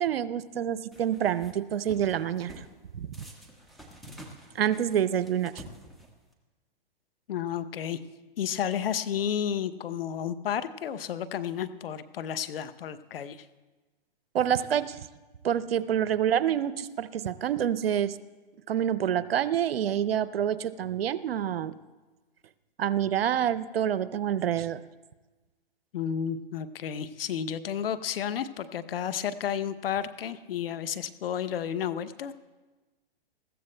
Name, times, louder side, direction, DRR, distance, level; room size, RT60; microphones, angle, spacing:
voice 1, 0.0-2.6 3.0-3.1 4.5-5.5 14.3-15.0 15.4-18.1 18.7-21.7 22.8-24.8, right 10 dB, 85° right, 15 dB, 0.6 m, -27 dB
sound 1, 0.9-1.5 1.9-2.7 3.1-6.3, equal, ahead, 1.3 m, -48 dB
voice 2, 7.3-8.0 8.4-13.5 25.9-32.3, left 9 dB, 75° left, 13 dB, 0.8 m, -32 dB
20.5 x 15.0 x 2.2 m, 1.2 s
hypercardioid pair, 130°, 29 cm